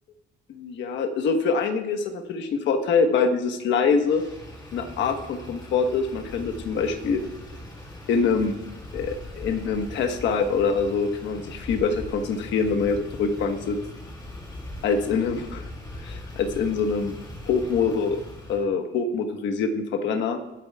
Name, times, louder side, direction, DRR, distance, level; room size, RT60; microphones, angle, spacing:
voice 1, 0.5-4.2 4.7-7.2 8.1-8.6 8.9-13.8 14.8-15.6 16.0-17.2 17.5-18.2 18.5-20.4, left 5 dB, 75° left, 6 dB, 1.3 m, -24 dB
Motor vehicle (road), 4.0-18.6, left 1 dB, 20° left, 3.2 m, -40 dB
21.5 x 9.1 x 2.4 m, 1.0 s
cardioid pair, 170°, 19 cm